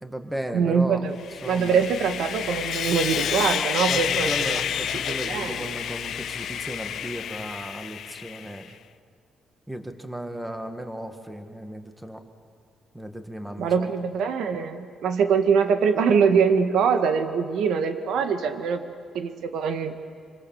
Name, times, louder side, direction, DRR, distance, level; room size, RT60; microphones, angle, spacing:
voice 1, 0.0-1.1 1.4-1.9 3.8-8.8 9.7-12.2 12.9-13.9, right 1 dB, 5° right, 6 dB, 1.8 m, -35 dB
voice 2, 0.5-1.2 1.5-4.6 5.2-5.7 13.6-18.8 19.1-19.9, right 6 dB, 75° right, 8 dB, 1.8 m, -23 dB
Sawing, 1.2-8.6, left 9 dB, 65° left, 0.7 m, -29 dB
26.0 x 25.5 x 7.2 m, 2.2 s
cardioid pair, 135°, 0 cm